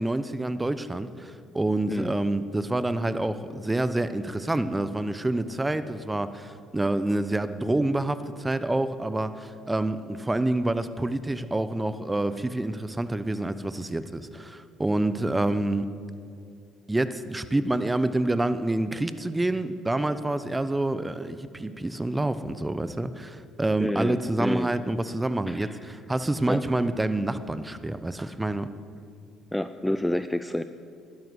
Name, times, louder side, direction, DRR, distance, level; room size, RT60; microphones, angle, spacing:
voice 1, 0.0-15.9 16.9-28.7, right 2 dB, 15° right, 13 dB, 0.8 m, -27 dB
voice 2, 23.8-24.7 25.5-25.8 26.5-26.6 29.5-30.6, left 1 dB, 5° left, 11 dB, 0.5 m, -28 dB
12.5 x 10.5 x 7.8 m, 2.3 s
hypercardioid pair, 60°, 0 cm